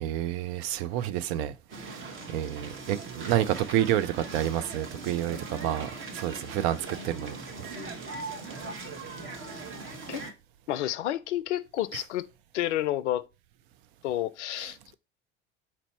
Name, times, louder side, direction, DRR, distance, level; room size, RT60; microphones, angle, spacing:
voice 1, 0.0-1.5 1.8-6.8 7.0-7.4, right 12 dB, 60° right, 0.6 m, -29 dB
sound 1, 1.7-10.3, right 3 dB, 35° right, 1.1 m, -40 dB
voice 2, 10.7-12.3 12.5-13.3 14.0-14.8, left 13 dB, 80° left, 0.5 m, -30 dB
4.4 x 2.7 x 4.3 m
figure-of-eight pair, 70°, 35 cm